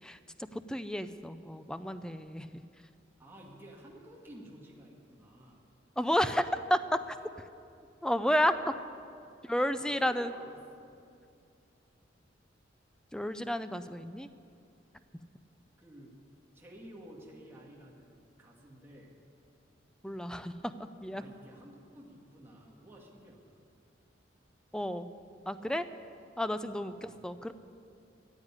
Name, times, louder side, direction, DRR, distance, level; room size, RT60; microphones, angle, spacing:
voice 1, 0.5-2.6 6.0-7.2 8.0-8.7 9.4-10.3 13.1-14.3 20.0-21.2 24.7-25.1 25.5-25.8 26.4-27.5, equal, 5° left, 11 dB, 0.5 m, -31 dB
voice 2, 3.2-5.6 9.4-11.0 15.8-16.2 16.5-19.1 21.1-23.6 26.9-27.2, equal, 15° right, -3 dB, 1.9 m, -52 dB
15.0 x 8.2 x 9.7 m, 2.4 s
head